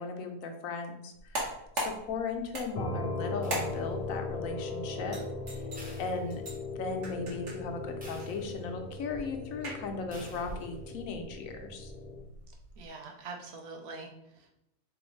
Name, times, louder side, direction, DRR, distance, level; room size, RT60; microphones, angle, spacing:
voice 1, 0.0-5.2 6.0-6.4 6.8-11.9, left 4 dB, 75° left, 5 dB, 1.0 m, -37 dB
sound 1, 1.1-12.9, right 1 dB, 60° right, 1.4 m, -42 dB
sound 2, 2.8-12.3, left 2 dB, 50° left, 0.6 m, -39 dB
sound 3, 3.4-4.2 5.7-6.9 7.3-7.4 8.0-8.9 10.1-10.9, right 1 dB, 10° right, 0.6 m, -50 dB
voice 2, 12.8-14.6, right 3 dB, 85° right, 2 dB, 1.2 m, -44 dB
3.8 x 3.5 x 3.1 m, 0.80 s
omnidirectional pair, 1.5 m